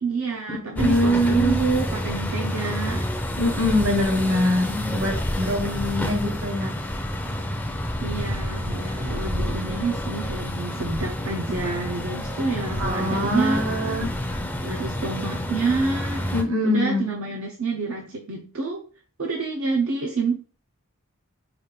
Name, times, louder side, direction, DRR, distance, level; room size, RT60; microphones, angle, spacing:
voice 1, 0.0-3.1 8.0-13.6 14.6-16.3 16.6-18.9 19.2-20.4, right 4 dB, 85° right, 0 dB, 0.6 m, -28 dB
voice 2, 0.7-1.6 3.4-6.7 12.8-14.4 16.3-17.1, left 1 dB, 65° right, 2 dB, 1.1 m, -23 dB
sound 1, 0.8-16.4, left 1 dB, 5° left, 0.4 m, -29 dB
4.9 x 2.4 x 3.1 m, 0.38 s
head